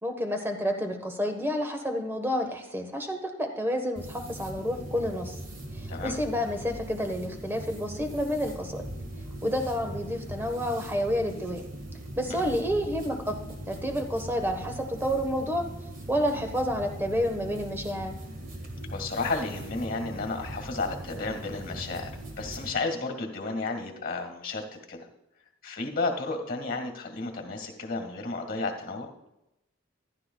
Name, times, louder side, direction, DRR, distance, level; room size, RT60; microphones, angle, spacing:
voice 1, 0.0-5.4 5.7-8.8 9.4-11.6 12.2-13.3 13.7-15.6 16.1-18.1, equal, 10° right, 5 dB, 1.3 m, -29 dB
sound 1, 4.0-22.7, right 1 dB, 45° right, 1.7 m, -40 dB
voice 2, 18.9-22.1 22.4-25.1 25.6-29.1, left 3 dB, 45° left, 4 dB, 2.0 m, -32 dB
14.5 x 12.0 x 2.3 m, 0.87 s
head